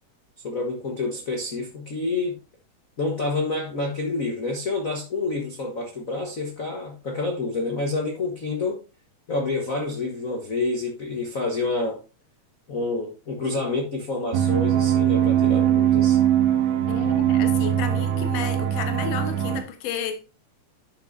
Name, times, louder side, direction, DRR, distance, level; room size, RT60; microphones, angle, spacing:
voice 1, 0.4-2.4 3.0-8.8 9.3-12.0 12.7-16.2, left 3 dB, 85° left, 0.7 m, -28 dB
sound 1, 14.3-19.6, right 10 dB, 65° right, 1.5 m, -21 dB
voice 2, 16.9-20.2, left 7 dB, 60° left, 2.1 m, -32 dB
11.0 x 6.0 x 2.6 m
omnidirectional pair, 3.6 m